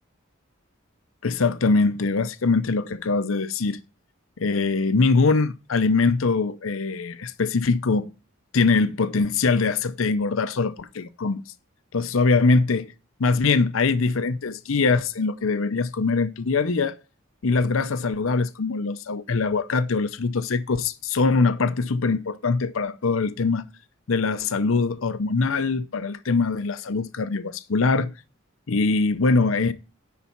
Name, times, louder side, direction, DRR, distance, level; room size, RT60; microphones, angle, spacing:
voice 1, 1.2-3.8 4.4-8.1 8.5-11.4 11.9-12.9 13.2-17.0 17.4-23.6 24.1-28.1 28.7-29.7, left 4 dB, 80° left, 0.7 m, -22 dB
10.5 x 4.1 x 7.1 m
head